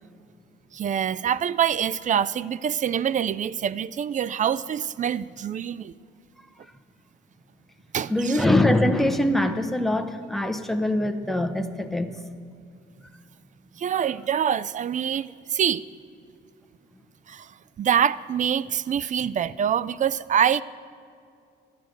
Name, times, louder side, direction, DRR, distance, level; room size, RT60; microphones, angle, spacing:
voice 1, 0.7-5.9 7.9-8.4 13.8-15.8 17.3-20.6, right 8 dB, 40° right, 18 dB, 0.4 m, -25 dB
voice 2, 8.1-12.2, left 1 dB, ahead, 6 dB, 0.8 m, -23 dB
12.0 x 9.3 x 6.4 m, 2.4 s
cardioid pair, 90°, 20 cm